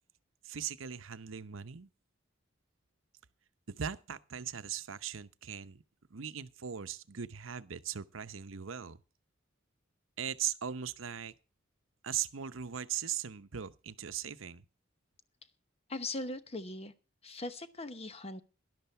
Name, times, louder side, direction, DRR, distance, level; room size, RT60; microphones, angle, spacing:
voice 1, 0.4-1.9 3.7-5.8 6.1-9.0 10.2-11.3 12.0-14.6, right 9 dB, 75° right, 0.8 m, -39 dB
voice 2, 15.9-16.9 17.2-18.4, left 2 dB, 30° left, 0.9 m, -40 dB
12.5 x 11.5 x 4.3 m
head